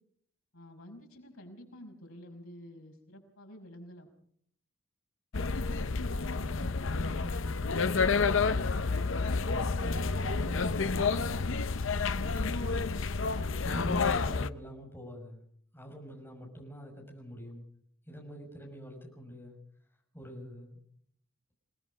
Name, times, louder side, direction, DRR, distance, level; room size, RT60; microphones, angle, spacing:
voice 1, 0.5-4.1, equal, 80° left, 3 dB, 5.7 m, -50 dB
sound 1, 5.3-14.5, left 4 dB, 65° left, 0.8 m, -30 dB
voice 2, 6.3-8.8 9.4-11.6 12.0-13.3 13.6-15.4 15.7-17.6 18.1-19.6 20.1-20.8, equal, 10° left, -1 dB, 6.3 m, -44 dB
28.0 x 19.0 x 5.1 m, 0.63 s
head